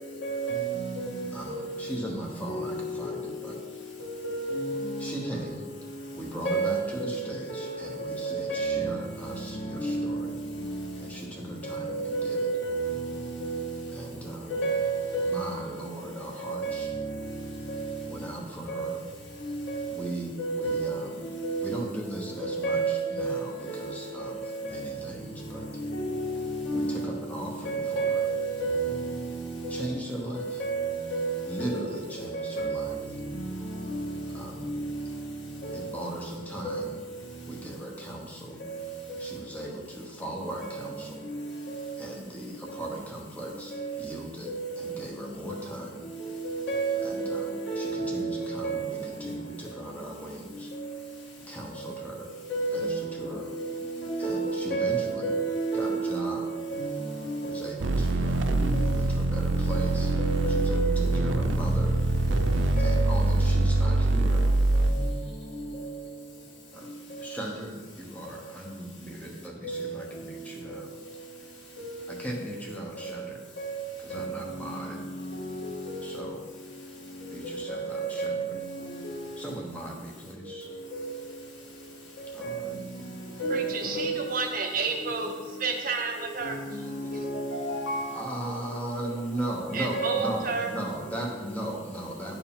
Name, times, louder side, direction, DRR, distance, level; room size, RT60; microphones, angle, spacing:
voice 1, 0.2-1.1 1.5-1.7 2.5-2.7 4.0-4.9 6.4-7.2 7.5-7.7 8.0-8.9 9.8-10.2 11.6-13.1 13.4-13.7 14.5-15.4 16.4-17.0 17.7-17.8 18.7-18.9 19.7-19.9 20.4-21.0 21.4-21.8 22.4-23.4 23.7-23.9 24.2-24.9 25.9-27.0 27.6-29.3 29.6-29.8 30.4-31.8 32.3-32.9 33.9-34.0 35.6-35.8 36.6-36.8 43.7-43.9 44.5-44.9 46.4-48.3 48.6-49.0 52.5-53.1 53.6-53.7 54.0-56.2 56.7-57.0 57.4-57.6 58.7-58.9 59.7-59.8 60.2-61.1 62.8-63.0 69.6-69.9 71.8-72.0 73.6-73.8 74.1-74.3 75.9-76.1 77.7-78.4 79.0-79.2 82.4-82.5 83.4-84.2 85.0-85.2 87.1-88.1 89.9-90.2, right 3 dB, 70° left, 1.8 m, -30 dB
voice 2, 1.3-4.1 5.0-5.7 6.1-10.4 11.0-12.5 13.9-14.6 15.2-16.9 18.1-19.1 19.9-21.2 21.6-25.7 26.7-28.3 29.7-30.6 31.5-33.0 34.3-34.7 35.7-37.0 37.5-38.6 39.2-41.3 42.0-46.1 47.0-50.7 51.5-52.4 52.7-53.5 54.2-55.4 55.7-56.5 57.4-60.1 60.5-62.0 62.8-64.5 66.7-66.9 67.2-70.9 72.1-73.4 74.0-75.0 76.0-76.4 77.3-78.3 79.4-80.7 82.3-82.7 88.1-92.4, right 1 dB, 10° left, 0.9 m, -38 dB
sound 1, 57.8-64.9, right 2 dB, 75° right, 0.5 m, -24 dB
voice 3, 83.0-87.1 89.7-90.7, right 4 dB, 45° right, 0.8 m, -32 dB
10.0 x 4.7 x 3.6 m
head